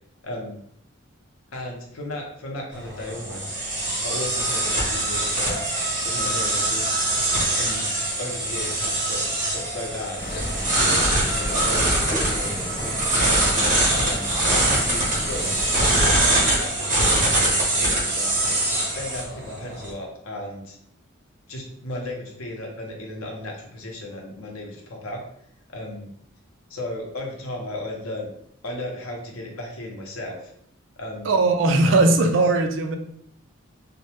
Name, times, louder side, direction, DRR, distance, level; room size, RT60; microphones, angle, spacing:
voice 1, 0.2-0.6 1.5-3.5 4.0-5.6 6.0-7.0 7.6-7.8 8.2-9.2 9.5-10.4 10.9-12.6 13.2-15.6 16.0-18.6 18.9-20.8 21.5-25.2 25.7-26.1 26.7-28.3 28.6-30.5 31.0-31.4 31.9-32.3, left 1 dB, 85° left, 1 dB, 0.6 m, -35 dB
sound 1, 2.7-19.9, right 1 dB, 35° right, 0.7 m, -23 dB
sound 2, 10.2-16.1, left 1 dB, 40° left, 0.6 m, -32 dB
voice 2, 31.2-33.0, right 2 dB, 60° right, 6 dB, 0.3 m, -19 dB
2.1 x 2.1 x 2.8 m, 0.69 s
head